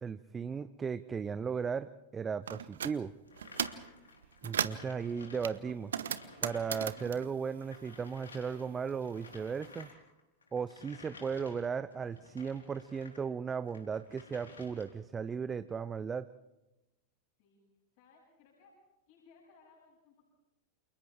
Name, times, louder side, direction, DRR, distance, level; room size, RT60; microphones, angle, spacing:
voice 1, 0.0-3.1 4.4-5.9 6.4-9.9 10.5-16.3, right 6 dB, 20° right, 14 dB, 0.7 m, -36 dB
sound 1, 2.5-3.0 3.4-3.9 4.2-4.9 5.4-8.4 8.6-9.8, right 8 dB, 65° right, 1.0 m, -37 dB
sound 2, 3.3-13.2 13.6-15.1, left 4 dB, 75° left, 4.0 m, -54 dB
voice 2, 17.9-18.7 19.1-20.3, left 4 dB, 50° left, -3 dB, 7.7 m, -62 dB
29.5 x 28.0 x 3.6 m, 0.98 s
figure-of-eight pair, 90°, 0 cm